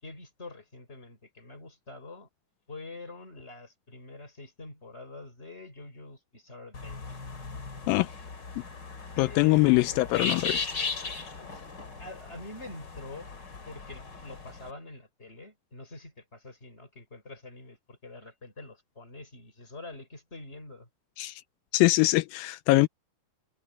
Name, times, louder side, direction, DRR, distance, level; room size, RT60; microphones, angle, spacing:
voice 1, 0.0-2.3 2.7-7.0 9.2-10.0 11.4-11.5 12.0-13.3 13.6-20.9, left 2 dB, 15° left, 5.2 m, -45 dB
sound 1, 6.7-14.7, left 4 dB, 35° left, 2.7 m, -37 dB
voice 2, 9.2-10.7 21.2-21.4 21.7-22.9, left 20 dB, 85° left, 2.3 m, -23 dB
omnidirectional pair, 4.1 m